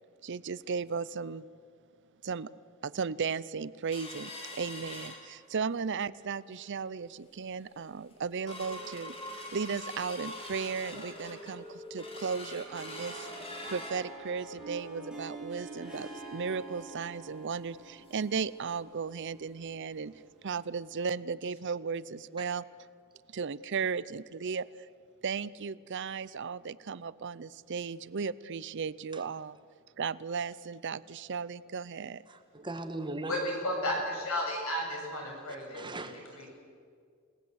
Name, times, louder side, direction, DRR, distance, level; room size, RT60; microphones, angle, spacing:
voice 1, 0.2-1.4 2.2-2.5 2.8-13.3 13.7-22.6 23.3-24.7 25.2-29.6 30.0-32.2, right 5 dB, 55° right, 18 dB, 0.6 m, -35 dB
sound 1, 3.9-5.8 6.2-6.3 6.6-7.0 7.5-7.6 7.9-18.4 18.8-18.9 19.2-19.4 19.9-20.0, left 1 dB, 25° left, 3.5 m, -45 dB
Harp, 12.5-20.8, right 2 dB, 5° right, 3.8 m, -49 dB
Bass guitar, 14.6-17.6, right 3 dB, 85° left, 5.4 m, -47 dB
voice 2, 32.3-33.4 35.7-36.3, right 2 dB, 20° right, 8 dB, 1.4 m, -39 dB
voice 3, 33.3-36.5, left 1 dB, 70° left, 0 dB, 7.6 m, -34 dB
29.0 x 18.0 x 8.1 m, 2.1 s
head